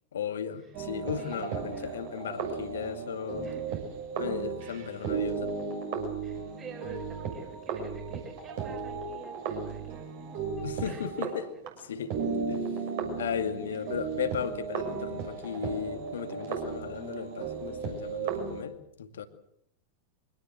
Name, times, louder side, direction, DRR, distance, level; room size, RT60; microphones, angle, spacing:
voice 1, 0.1-3.5 4.2-5.5 10.6-11.4 11.9-12.1 12.5-12.6 13.2-19.2, left 8 dB, 65° left, 9 dB, 2.3 m, -35 dB
sound 1, 0.7-11.7 12.0-18.6, right 5 dB, 50° right, 6.7 m, -35 dB
voice 2, 1.2-2.0 3.4-3.8 6.2-11.3, right 7 dB, 30° right, 0 dB, 6.2 m, -47 dB
24.5 x 19.0 x 7.8 m, 0.74 s
figure-of-eight pair, 90°, 0 cm